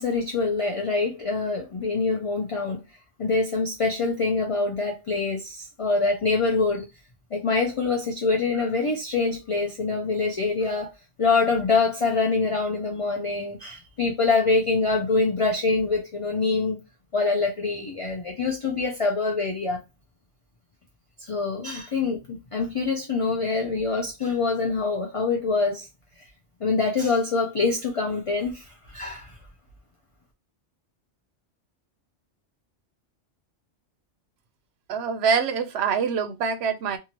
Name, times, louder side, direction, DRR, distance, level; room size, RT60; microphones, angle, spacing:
voice 1, 0.0-2.8 3.2-6.9 7.3-16.8 17.1-19.8 21.2-25.9 26.6-29.4, left 3 dB, 45° left, 0.4 m, -25 dB
voice 2, 34.9-37.0, right 6 dB, 70° right, 0.8 m, -25 dB
2.8 x 2.4 x 2.9 m
omnidirectional pair, 1.2 m